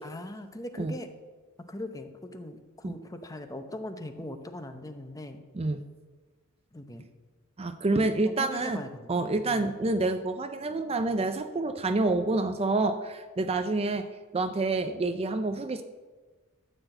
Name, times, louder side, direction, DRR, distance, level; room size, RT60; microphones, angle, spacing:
voice 1, 0.0-1.1 1.7-5.4 6.7-7.1 8.2-9.8, left 1 dB, 15° left, 7 dB, 0.8 m, -40 dB
voice 2, 7.6-8.8 9.1-14.1 14.3-15.8, right 2 dB, 25° right, 9 dB, 0.5 m, -28 dB
13.0 x 4.5 x 7.8 m, 1.3 s
head